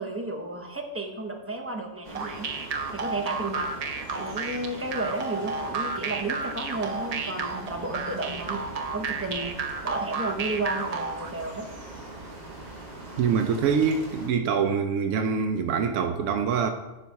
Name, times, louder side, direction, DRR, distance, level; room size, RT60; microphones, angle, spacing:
voice 1, 0.0-2.5 2.9-3.7 4.1-8.6 8.9-9.5 9.8-11.6, right 2 dB, 15° right, 0.7 m, -32 dB
sound 1, 2.0-14.3, right 2 dB, 35° right, 1.4 m, -42 dB
sound 2, 2.1-11.3, right 4 dB, 50° right, 0.4 m, -32 dB
voice 2, 13.2-16.7, right 6 dB, 80° right, 0.9 m, -24 dB
10.5 x 4.2 x 4.6 m
omnidirectional pair, 1.3 m